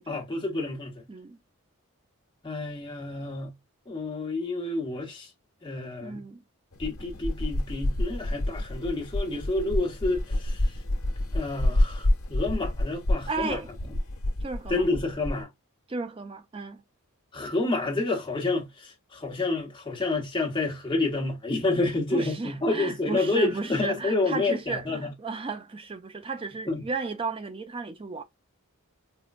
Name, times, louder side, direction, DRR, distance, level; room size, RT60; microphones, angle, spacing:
voice 1, 0.1-1.0 2.4-3.5 3.9-5.3 5.6-6.2 6.8-10.8 11.3-13.6 14.7-15.5 17.3-25.1 26.7-26.9, left 2 dB, 20° left, 1.0 m, -29 dB
voice 2, 1.1-1.4 6.0-6.4 13.3-13.7 14.4-14.9 15.9-16.8 22.1-28.2, right 4 dB, 25° right, 0.4 m, -34 dB
sound 1, 6.7-15.4, left 1 dB, 75° left, 1.0 m, -28 dB
4.4 x 2.1 x 2.5 m
head